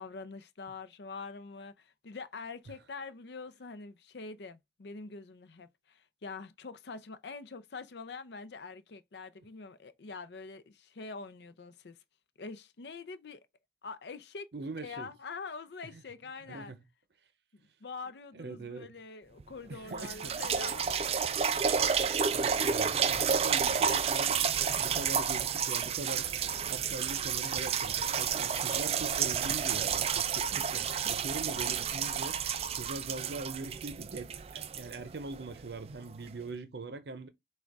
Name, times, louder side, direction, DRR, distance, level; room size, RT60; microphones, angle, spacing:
voice 1, 0.0-12.0 12.4-13.5 13.8-14.5 14.8-16.7 17.5-21.0, left 4 dB, 70° left, 0.6 m, -45 dB
voice 2, 14.5-15.1 16.5-16.8 18.3-18.9 19.7-20.3 22.3-24.5 24.8-32.4 32.7-37.3, right 3 dB, 70° right, 0.6 m, -42 dB
sound 1, 19.4-19.5 19.9-35.6 36.3-36.4, right 7 dB, 35° right, 0.3 m, -30 dB
6.3 x 2.3 x 3.5 m
head